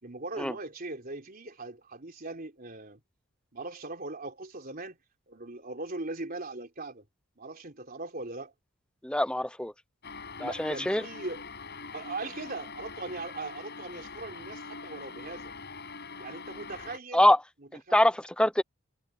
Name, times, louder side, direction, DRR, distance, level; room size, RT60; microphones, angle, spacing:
voice 1, 0.0-3.0 3.5-5.0 5.3-7.0 7.4-8.5 10.4-11.4 11.9-15.5 16.2-17.3 17.6-18.0, right 2 dB, 45° right, 3.6 m, -40 dB
voice 2, 9.0-9.7 10.4-11.0 17.1-17.4 17.9-18.6, left 1 dB, 5° left, 0.7 m, -24 dB
sound 1, 10.0-17.0, left 4 dB, 50° left, 7.9 m, -43 dB
head